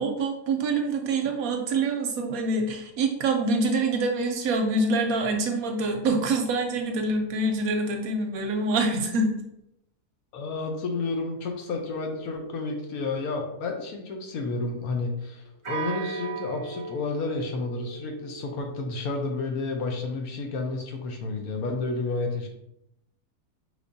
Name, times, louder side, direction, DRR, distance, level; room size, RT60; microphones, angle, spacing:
voice 1, 0.0-9.3, right 2 dB, 70° right, 3 dB, 0.9 m, -25 dB
voice 2, 10.3-22.5, left 3 dB, 70° left, 3 dB, 1.1 m, -31 dB
sound 1, 11.8-14.9 15.6-19.0, right 4 dB, 40° right, 0.4 m, -39 dB
5.0 x 3.2 x 2.6 m, 0.81 s
omnidirectional pair, 1.7 m